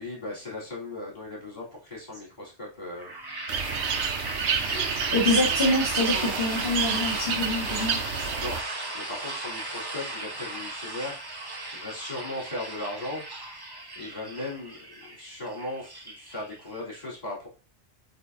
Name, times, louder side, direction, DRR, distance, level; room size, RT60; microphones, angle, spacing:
voice 1, 0.0-3.1 8.4-8.6 8.9-11.4 11.7-13.3 14.0-17.5, left 2 dB, 35° left, -4 dB, 3.6 m, -37 dB
sound 1, 3.0-16.8, right 2 dB, 20° right, 0.9 m, -35 dB
sound 2, 3.5-8.6, right 7 dB, 75° right, 1.0 m, -29 dB
voice 2, 5.1-8.0, left 2 dB, 55° left, -3 dB, 2.2 m, -26 dB
8.1 x 4.3 x 2.8 m, 0.31 s
omnidirectional pair, 1.2 m